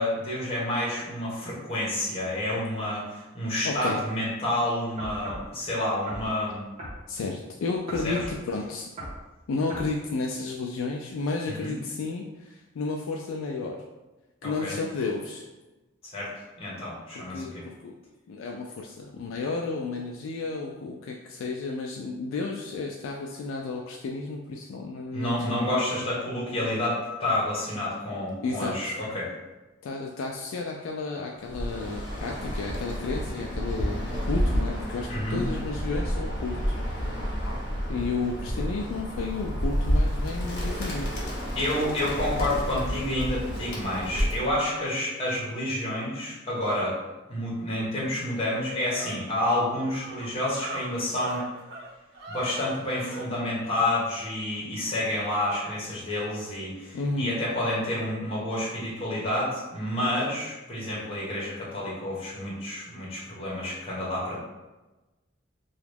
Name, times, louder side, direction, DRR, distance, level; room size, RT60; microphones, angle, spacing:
voice 1, 0.0-6.6 8.0-8.2 11.5-11.7 14.4-14.7 16.1-16.3 16.6-17.6 25.1-29.3 35.1-35.4 41.5-47.0 47.3-51.4 52.3-64.4, left 1 dB, 30° left, -6 dB, 1.0 m, -29 dB
voice 2, 3.6-4.0 7.1-8.9 9.5-13.8 14.4-15.4 17.1-17.9 18.3-25.8 28.4-28.9 29.8-36.6 37.9-41.1 56.9-57.4, left 3 dB, 90° left, 0 dB, 0.3 m, -32 dB
sound 1, 5.0-5.5 6.1-6.3 6.8-7.0 7.9-8.4 9.0-9.2 9.7-9.9, right 1 dB, 35° right, 1.1 m, -38 dB
Bird, 31.4-44.6, equal, 60° left, 0.8 m, -30 dB
sound 2, 47.8-47.9 48.3-53.3, right 2 dB, 55° right, 0.5 m, -41 dB
2.9 x 2.3 x 3.3 m, 1.1 s
head